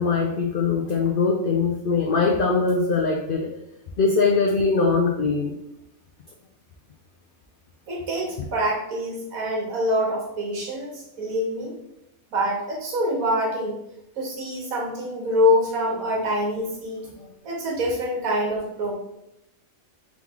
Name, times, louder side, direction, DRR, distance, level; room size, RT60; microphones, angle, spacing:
voice 1, 0.0-3.5 4.0-5.6 17.2-17.3, left 4 dB, 80° left, 1 dB, 0.4 m, -22 dB
voice 2, 7.9-11.7 12.3-13.8 14.2-17.1 17.4-18.9, equal, 80° right, -2 dB, 1.6 m, -25 dB
3.6 x 3.0 x 3.6 m, 0.83 s
omnidirectional pair, 1.5 m